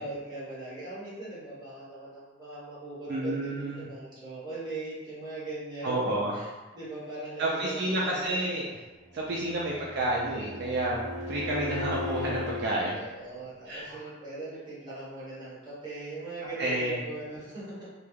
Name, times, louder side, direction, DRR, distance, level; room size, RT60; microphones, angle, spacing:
voice 1, 0.0-6.5 6.7-7.9 9.1-9.6 12.9-17.9, right 2 dB, 25° right, -10 dB, 1.0 m, -40 dB
voice 2, 3.1-3.8 5.8-6.3 7.4-8.8 9.1-13.0 13.7-14.0 16.6-17.0, right 1 dB, 60° right, -4 dB, 0.4 m, -30 dB
Bowed string instrument, 9.1-12.8, left 2 dB, 35° left, 0.5 m, -36 dB
2.3 x 2.2 x 3.1 m, 1.2 s
head